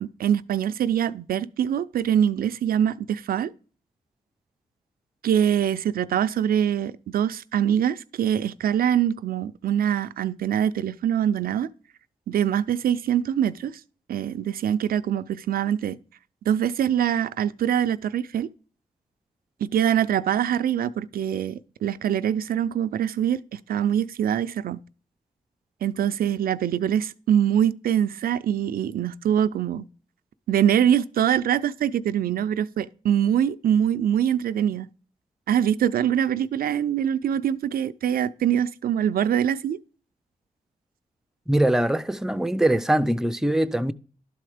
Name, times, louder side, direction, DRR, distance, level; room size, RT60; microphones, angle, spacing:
voice 1, 0.0-3.5 5.2-11.7 12.3-13.8 14.1-16.0 16.5-18.5 19.6-24.8 25.8-29.9 30.5-34.9 35.5-39.8, right 9 dB, 85° right, 0.4 m, -24 dB
voice 2, 41.5-43.9, right 1 dB, 5° right, 0.5 m, -22 dB
11.5 x 4.3 x 4.9 m
cardioid pair, 60°, 15 cm